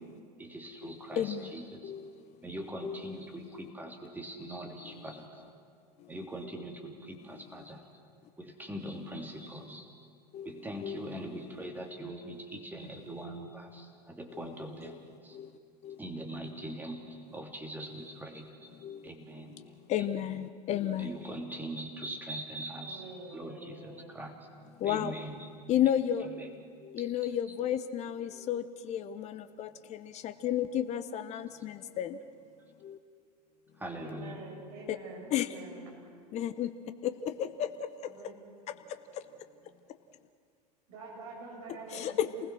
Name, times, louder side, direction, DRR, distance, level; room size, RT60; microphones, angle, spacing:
voice 1, 0.4-1.9 2.4-5.5 6.1-7.8 8.4-10.1 10.4-15.4 16.0-18.7 19.0-19.5 20.0-20.1 21.0-24.3 24.8-25.5 26.2-26.5 27.0-27.3 33.8-34.4, right 1 dB, 10° right, 2 dB, 3.2 m, -42 dB
voice 2, 1.2-1.5 1.8-2.4 2.8-3.4 6.0-6.1 10.3-11.1 14.3-14.4 14.8-15.0 15.3-15.5 15.8-16.0 18.8-19.1 19.6-21.1 24.8-25.1 25.7-32.2 32.8-33.0 34.9-35.0 35.3-35.5 36.3-36.7 37.0-37.5 41.9-42.3, left 10 dB, 30° left, 11 dB, 0.8 m, -33 dB
voice 3, 22.7-24.2 34.0-35.9 38.2-38.3 40.9-42.4, right 2 dB, 60° right, -2 dB, 7.7 m, -46 dB
28.5 x 20.0 x 6.2 m, 2.2 s
figure-of-eight pair, 85°, 21 cm